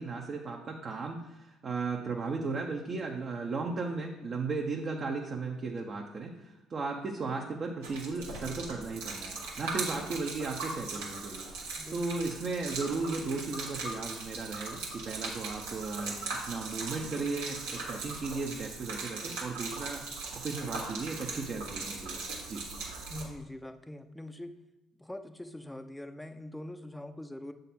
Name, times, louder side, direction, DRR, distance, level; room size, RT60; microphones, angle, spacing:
voice 1, 0.0-22.2 22.5-22.6, right 3 dB, 45° right, 0 dB, 0.7 m, -36 dB
Gurgling / Liquid, 7.8-23.2, right 3 dB, 90° right, 1.3 m, -39 dB
voice 2, 23.1-24.5 25.0-27.5, left 1 dB, 5° left, 9 dB, 0.5 m, -43 dB
7.1 x 3.9 x 4.2 m, 1.0 s
hypercardioid pair, 65°, 0 cm